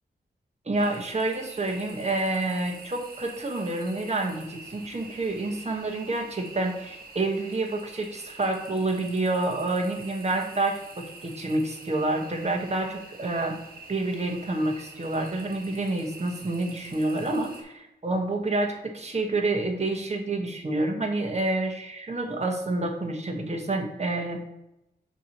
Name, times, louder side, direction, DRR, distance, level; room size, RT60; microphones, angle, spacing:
voice 1, 0.7-13.6 13.9-24.4, right 2 dB, 40° right, 3 dB, 1.2 m, -28 dB
sound 1, 0.7-17.6, right 3 dB, 55° right, 1.4 m, -46 dB
7.1 x 3.0 x 5.7 m, 0.88 s
wide cardioid pair, 90°, 18 cm